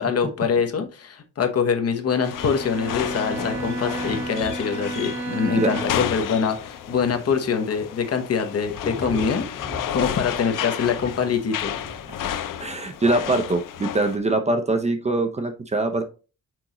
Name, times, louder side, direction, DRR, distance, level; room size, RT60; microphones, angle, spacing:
voice 1, 0.0-9.7 9.9-11.8, left 6 dB, 50° left, 6 dB, 1.0 m, -24 dB
Bowed string instrument, 2.1-6.2, right 2 dB, 55° right, 1.6 m, -32 dB
sound 1, 2.2-14.2, left 10 dB, 85° left, 0.6 m, -32 dB
sound 2, 2.9-12.1, left 2 dB, 25° left, 1.6 m, -40 dB
voice 2, 12.6-16.0, right 2 dB, 20° right, 6 dB, 0.6 m, -23 dB
6.2 x 5.1 x 3.0 m, 0.32 s
wide cardioid pair, 175°, 32 cm